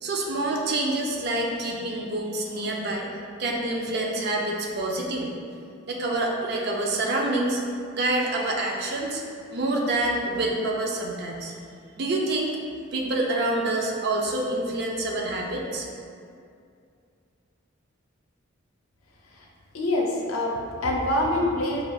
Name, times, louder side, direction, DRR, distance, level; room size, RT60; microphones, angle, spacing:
voice 1, 0.0-3.1 3.4-5.3 5.9-7.6 7.9-9.2 9.5-11.5 12.0-12.6 12.9-15.9, right 2 dB, 50° right, -1 dB, 0.4 m, -27 dB
voice 2, 19.7-21.8, left 1 dB, 90° left, -1 dB, 0.5 m, -25 dB
4.9 x 2.3 x 2.3 m, 2.3 s
head